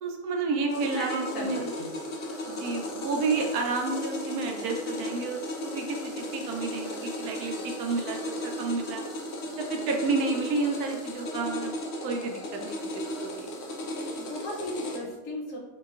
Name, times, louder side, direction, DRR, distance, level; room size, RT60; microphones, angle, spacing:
voice 1, 0.0-1.7 2.5-9.0 9.6-11.8 12.0-13.5, right 4 dB, 75° right, 2 dB, 1.0 m, -31 dB
sound 1, 0.7-15.0, left 1 dB, 80° left, 0.5 m, -35 dB
voice 2, 0.7-1.9 14.2-15.6, left 1 dB, 65° left, -2 dB, 0.9 m, -36 dB
4.1 x 2.9 x 2.3 m, 1.2 s
omnidirectional pair, 1.7 m